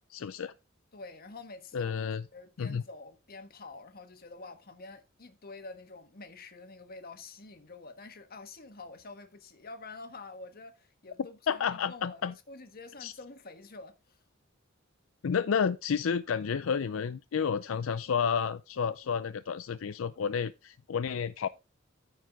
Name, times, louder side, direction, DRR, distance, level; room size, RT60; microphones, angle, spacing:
voice 1, 0.1-0.5 1.7-2.2 2.6-2.8 11.5-12.3 13.0-13.1 15.2-21.5, left 6 dB, 80° left, 0.4 m, -31 dB
voice 2, 0.9-1.9 2.3-12.2 12.5-14.2, left 3 dB, 50° left, 1.3 m, -47 dB
14.0 x 4.8 x 3.5 m
head